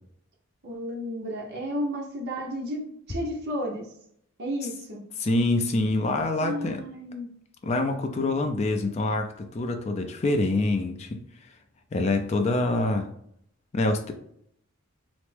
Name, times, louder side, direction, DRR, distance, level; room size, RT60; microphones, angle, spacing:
voice 1, 0.6-3.9 4.4-5.0 6.4-7.3, equal, 50° right, -3 dB, 0.7 m, -32 dB
voice 2, 5.2-6.8 7.6-11.5 11.9-13.1 13.7-14.1, left 2 dB, 30° left, 6 dB, 0.3 m, -26 dB
3.3 x 2.1 x 3.2 m, 0.69 s
head